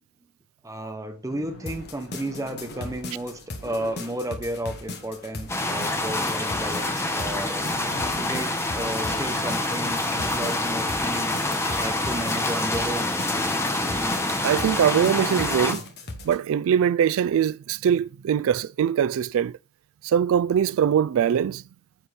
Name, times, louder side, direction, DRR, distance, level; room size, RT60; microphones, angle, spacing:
voice 1, 0.6-7.6 8.2-11.4 11.8-13.1, right 1 dB, 15° right, 1.1 m, -33 dB
sound 1, 1.3-15.2, left 1 dB, 80° left, 4.3 m, -47 dB
sound 2, 1.7-16.4, left 2 dB, 50° left, 1.3 m, -38 dB
sound 3, 5.5-15.7, left 2 dB, 10° left, 1.0 m, -26 dB
voice 2, 14.4-15.8 16.2-19.6 20.0-21.6, right 8 dB, 60° right, 0.3 m, -22 dB
9.7 x 4.3 x 5.2 m
head